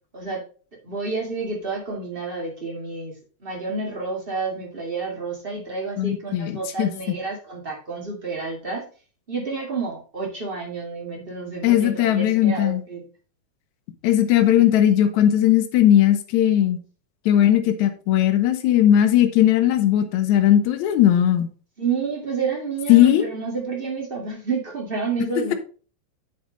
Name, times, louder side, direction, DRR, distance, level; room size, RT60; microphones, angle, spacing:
voice 1, 0.8-3.1 3.4-8.9 9.3-13.0 21.8-25.5, right 4 dB, 25° right, -1 dB, 1.1 m, -29 dB
voice 2, 6.0-7.2 11.6-12.8 14.0-16.8 17.3-21.5 22.9-23.3, left 11 dB, 70° left, 7 dB, 1.9 m, -18 dB
9.3 x 5.1 x 3.9 m, 0.39 s
omnidirectional pair, 4.3 m